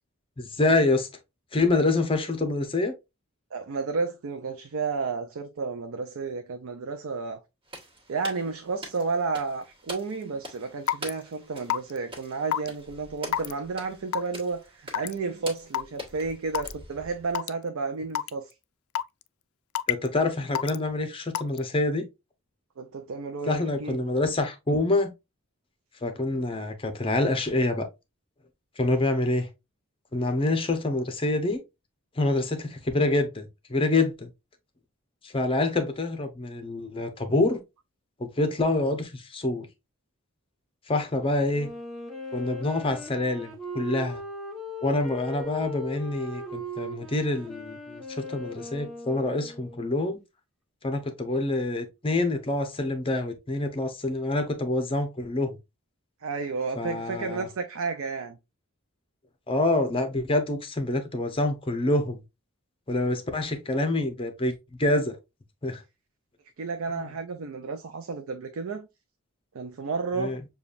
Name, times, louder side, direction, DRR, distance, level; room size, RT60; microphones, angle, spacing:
voice 1, 0.4-1.1 1.5-2.9 19.9-22.1 23.5-25.1 26.0-27.9 28.8-29.5 30.1-31.6 32.2-34.3 35.2-37.6 38.2-39.7 40.9-41.7 42.3-44.2 44.8-50.2 50.8-55.6 56.8-57.5 59.5-62.2 62.9-64.5 64.8-65.2 65.6-65.8 66.9-67.1 70.2-70.4, left 2 dB, 25° left, 0.7 m, -26 dB
voice 2, 3.5-7.4 8.1-18.5 22.8-24.1 56.2-58.4 66.6-68.9 69.5-70.3, right 4 dB, 70° right, 0.5 m, -32 dB
sound 1, 7.6-17.4, equal, 25° right, 1.5 m, -44 dB
Raindrop / Water tap faucet / Drip, 10.9-11.1 11.7-12.0 12.5-12.7 13.3-13.5 14.1-14.4 14.9-15.1 15.7-15.8 16.5-16.7 17.4-17.5 18.2-18.3 19.0-19.2 19.8-20.1 20.6-20.8 21.4-21.6, left 10 dB, 75° left, 0.3 m, -27 dB
Wind instrument woodwind instrument, 41.5-50.1, equal, ahead, 1.1 m, -39 dB
6.9 x 2.3 x 2.4 m
head